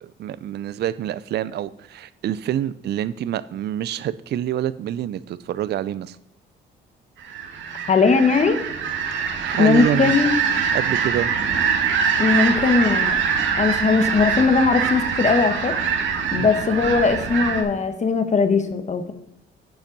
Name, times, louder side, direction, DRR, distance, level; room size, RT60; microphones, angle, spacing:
voice 1, 0.0-6.2 9.1-10.2 10.7-11.3 12.4-12.5 16.3-16.5, right 11 dB, 55° right, 16 dB, 0.4 m, -27 dB
sound 1, 7.2-17.6, right 6 dB, 75° right, 1.5 m, -23 dB
voice 2, 7.9-8.6 9.6-10.3 12.2-13.2 13.6-15.7 16.3-19.1, left 4 dB, 35° left, 9 dB, 1.2 m, -19 dB
8.8 x 5.6 x 5.3 m, 0.79 s
cardioid pair, 90°, 20 cm